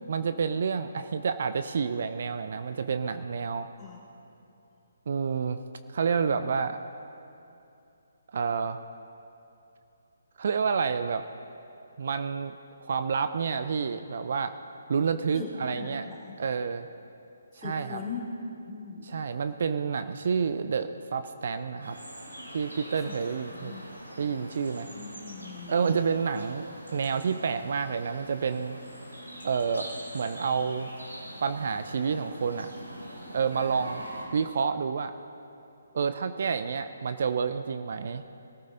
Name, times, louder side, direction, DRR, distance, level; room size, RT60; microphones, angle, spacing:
voice 1, 0.1-3.7 5.1-5.6 5.9-6.8 8.3-8.8 10.4-11.3 12.0-12.6 12.8-14.5 14.9-16.1 16.4-16.9 17.6-18.0 19.0-22.0 22.5-23.8 24.2-24.9 25.7-28.8 29.4-30.9 31.4-32.7 33.3-34.1 34.3-35.1 35.9-38.2, right 6 dB, 55° right, 10 dB, 0.5 m, -29 dB
voice 2, 15.3-16.3 17.6-19.1 23.5-23.9 24.9-25.8, left 4 dB, 15° left, -5 dB, 2.9 m, -39 dB
sound 1, 21.8-34.2, right 1 dB, 90° right, 3.6 m, -43 dB
22.0 x 14.0 x 3.9 m, 2.7 s
figure-of-eight pair, 140°, 0 cm